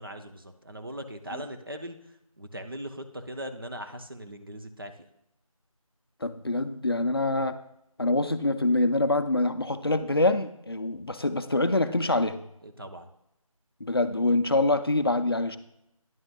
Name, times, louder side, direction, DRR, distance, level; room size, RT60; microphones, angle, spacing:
voice 1, 0.0-2.0 2.4-4.9 12.6-13.1, right 1 dB, 40° right, 6 dB, 0.6 m, -39 dB
voice 2, 6.2-7.6 8.0-12.4 13.8-15.6, left 2 dB, 45° left, 9 dB, 0.4 m, -25 dB
10.5 x 6.1 x 2.2 m, 0.80 s
figure-of-eight pair, 175°, 18 cm